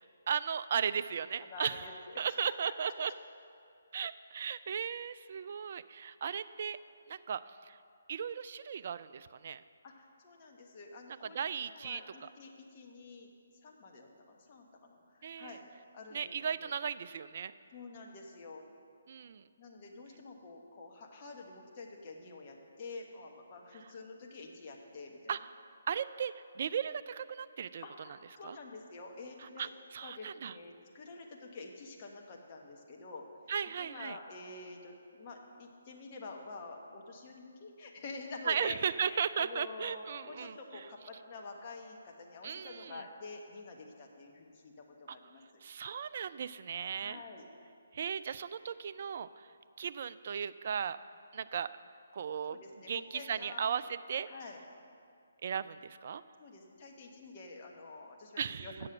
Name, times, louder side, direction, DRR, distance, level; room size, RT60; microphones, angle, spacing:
voice 1, 0.3-1.8 2.2-3.1 3.9-6.8 7.1-7.4 7.7-7.8 8.1-9.6 11.2-12.3 15.2-15.6 16.1-17.5 19.1-19.4 25.3-25.4 25.9-27.8 28.4-28.6 29.6-30.5 33.5-34.2 38.5-40.8 42.4-43.0 45.1-45.2 45.6-47.2 47.9-49.3 49.8-51.0 51.3-51.7 52.1-52.6 52.9-54.3 55.4-56.2 58.4-58.9, right 7 dB, 50° right, 13 dB, 0.3 m, -36 dB
voice 2, 1.4-2.9 9.8-11.4 11.6-13.3 13.6-15.6 15.9-16.3 16.6-16.7 17.7-18.6 19.6-25.4 27.8-29.7 30.0-33.2 33.8-45.4 47.0-47.5 52.5-53.9 54.3-54.6 56.4-58.9, left 3 dB, 35° left, 0 dB, 1.2 m, -48 dB
7.5 x 7.0 x 7.8 m, 2.4 s
figure-of-eight pair, 140°, 0 cm